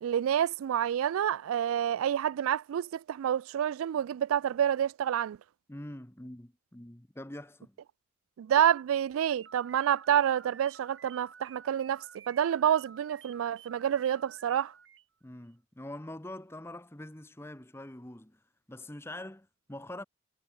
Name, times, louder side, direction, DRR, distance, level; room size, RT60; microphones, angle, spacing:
voice 1, 0.0-5.4 8.4-14.7, right 9 dB, 85° right, 0.3 m, -28 dB
voice 2, 5.7-7.8 15.2-18.4 18.7-20.0, left 1 dB, 10° left, 1.0 m, -44 dB
sound 1, 9.3-15.1, right 7 dB, 65° right, 3.6 m, -52 dB
head